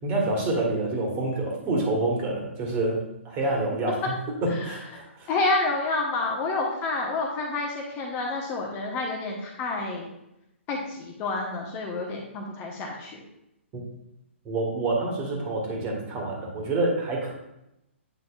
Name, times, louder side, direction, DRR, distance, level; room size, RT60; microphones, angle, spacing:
voice 1, 0.0-4.0 4.4-5.3 14.4-17.3, right 2 dB, 25° right, -1 dB, 1.7 m, -27 dB
voice 2, 5.3-10.1 10.7-13.2, left 3 dB, 25° left, 0 dB, 1.0 m, -29 dB
8.4 x 5.2 x 2.4 m, 0.86 s
figure-of-eight pair, 125°, 7 cm